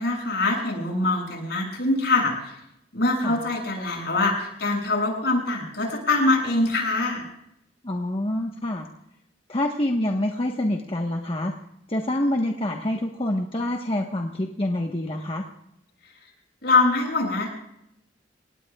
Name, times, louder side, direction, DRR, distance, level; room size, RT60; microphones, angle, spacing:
voice 1, 0.0-2.5 2.9-7.2 16.6-17.5, left 2 dB, 65° left, 1 dB, 7.0 m, -23 dB
voice 2, 7.8-8.9 9.5-11.5 11.9-15.4, left 1 dB, 30° left, 1 dB, 1.2 m, -26 dB
29.0 x 18.5 x 2.4 m, 0.80 s
head